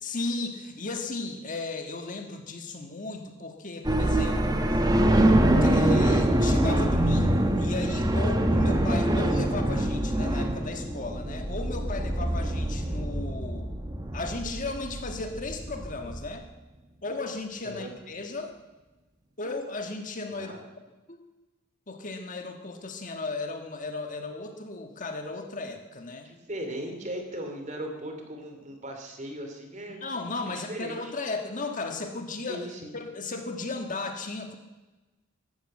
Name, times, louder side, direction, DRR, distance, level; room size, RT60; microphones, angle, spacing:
voice 1, 0.0-4.6 5.6-13.7 14.1-16.5 17.0-18.5 19.4-20.6 21.1-21.2 21.9-26.3 30.0-32.7 32.9-34.6, left 3 dB, 40° left, 5 dB, 1.6 m, -35 dB
sound 1, 3.8-16.3, right 1 dB, 20° right, 1.3 m, -24 dB
voice 2, 20.3-20.6 26.2-30.1 30.5-31.1 32.5-33.0, right 1 dB, 35° right, 4 dB, 2.8 m, -38 dB
15.5 x 12.0 x 7.5 m, 1.1 s
head